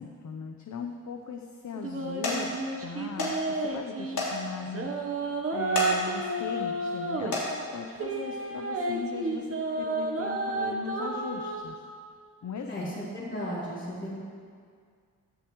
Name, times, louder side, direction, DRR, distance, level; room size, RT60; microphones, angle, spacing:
voice 1, 0.0-2.5 2.8-4.9 5.2-9.5 9.8-11.8 12.4-12.9, left 6 dB, 55° left, 4 dB, 0.8 m, -38 dB
sound 1, 0.8-1.2 1.7-1.9 2.2-2.4 3.2-3.3 3.6-3.7 4.1-4.3 4.7-4.8 5.6-5.9 6.4-6.7 7.2-7.5 8.4-8.6 9.1-9.2, left 3 dB, 75° left, 3.7 m, -31 dB
sound 2, 1.8-4.2 4.6-7.4 7.9-11.6, right 2 dB, 40° right, 1.2 m, -31 dB
voice 2, 12.7-14.2, equal, 35° left, -7 dB, 3.7 m, -35 dB
17.0 x 13.0 x 3.2 m, 2.1 s
wide cardioid pair, 130°, 35 cm